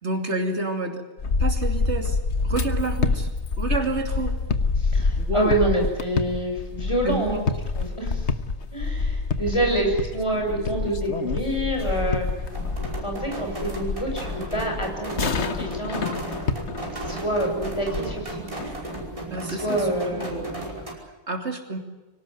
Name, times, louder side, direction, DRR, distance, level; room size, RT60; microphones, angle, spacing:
voice 1, 0.0-1.0 1.4-2.2 2.4-3.3 3.6-4.4 5.2-5.5 7.0-7.4 19.3-21.8, right 2 dB, 80° right, 4 dB, 3.1 m, -29 dB
sound 1, 1.2-19.2, left 4 dB, 75° left, 1.5 m, -27 dB
voice 2, 4.8-7.5 7.7-8.3 8.7-12.3 13.0-16.2 16.9-18.5 19.5-20.3, right 1 dB, 25° left, 1 dB, 7.3 m, -27 dB
sound 2, 11.7-20.9, right 2 dB, 30° right, 5.4 m, -35 dB
24.5 x 18.0 x 9.4 m, 1.2 s
omnidirectional pair, 1.2 m